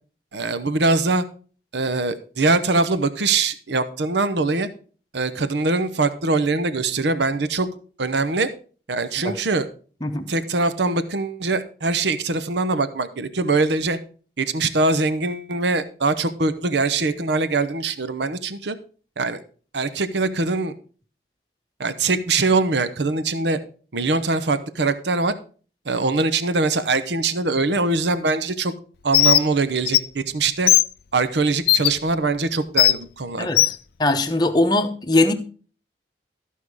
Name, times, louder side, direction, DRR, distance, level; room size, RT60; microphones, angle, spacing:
voice 1, 0.3-1.2 1.7-4.7 5.1-7.7 8.0-8.5 8.9-9.7 10.3-14.0 14.4-18.8 19.2-19.4 19.7-20.7 21.8-23.6 23.9-25.3 25.9-28.7 29.0-30.7 31.1-33.6, right 3 dB, 75° right, 12 dB, 0.8 m, -22 dB
Bird, 29.1-29.4 29.9-30.0 30.7-30.8 31.7-31.9 32.8-32.9 33.6-33.7, left 13 dB, 60° left, 0.5 m, -15 dB
voice 2, 34.0-35.3, left 2 dB, 25° left, 5 dB, 1.0 m, -20 dB
14.0 x 5.5 x 4.8 m, 0.40 s
head